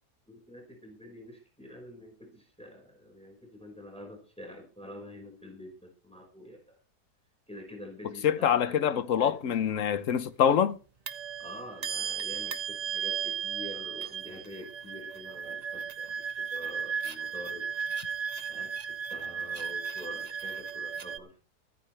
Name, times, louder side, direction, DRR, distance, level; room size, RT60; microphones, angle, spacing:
voice 1, 0.3-6.8 7.5-9.6 11.4-17.7 18.5-21.4, left 1 dB, 5° left, 5.0 m, -47 dB
voice 2, 8.2-10.8, left 8 dB, 60° left, 1.1 m, -25 dB
sound 1, 9.5-9.6 11.1-21.2, right 7 dB, 35° right, 0.6 m, -35 dB
23.5 x 9.6 x 3.3 m
omnidirectional pair, 1.7 m